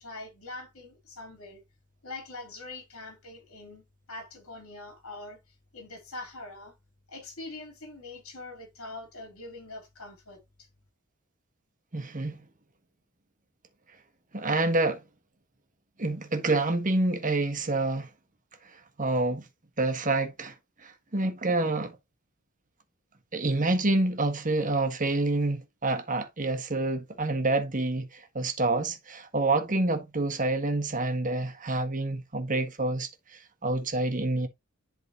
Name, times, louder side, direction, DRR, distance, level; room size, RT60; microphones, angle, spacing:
voice 1, 0.0-1.6 2.0-3.8 4.1-6.7 7.1-10.7, left 2 dB, 80° left, 2.9 m, -43 dB
voice 2, 11.9-12.4 14.3-15.0 16.0-18.1 18.6-19.5 19.8-22.0 23.3-34.5, right 2 dB, 40° right, 1.4 m, -28 dB
11.0 x 3.9 x 2.8 m
head